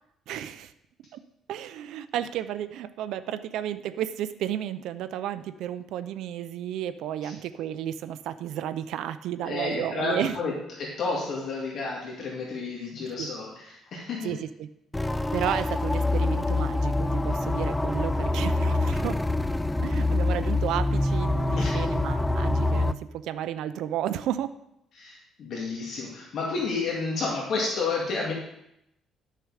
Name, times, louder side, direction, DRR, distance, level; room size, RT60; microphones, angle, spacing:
voice 1, 0.3-0.7 1.1-1.2 1.5-10.3 13.2-13.3 14.2-14.7 15.1-19.2 19.8-24.5, right 11 dB, 80° right, 12 dB, 0.5 m, -32 dB
voice 2, 9.4-10.5 10.8-14.3 21.6-21.8 25.0-28.3, left 4 dB, 55° left, -3 dB, 2.2 m, -31 dB
sound 1, 14.9-22.9, left 2 dB, 10° left, 0.3 m, -25 dB
11.0 x 6.6 x 4.9 m, 0.79 s
cardioid pair, 125°, 0 cm